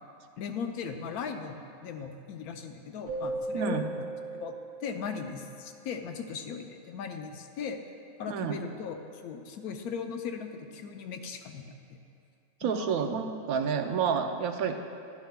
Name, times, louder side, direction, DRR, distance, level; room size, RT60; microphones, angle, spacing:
voice 1, 0.4-4.0 4.3-4.6 4.8-7.8 8.2-9.0 9.2-12.0 12.6-13.0, left 6 dB, 90° left, 6 dB, 1.1 m, -38 dB
Keyboard (musical), 3.1-5.8, right 2 dB, 45° right, 2.3 m, -37 dB
voice 2, 3.5-3.9 8.3-8.7 12.6-14.8, right 6 dB, 80° right, 6 dB, 1.1 m, -29 dB
11.5 x 11.0 x 2.2 m, 2.5 s
omnidirectional pair, 1.5 m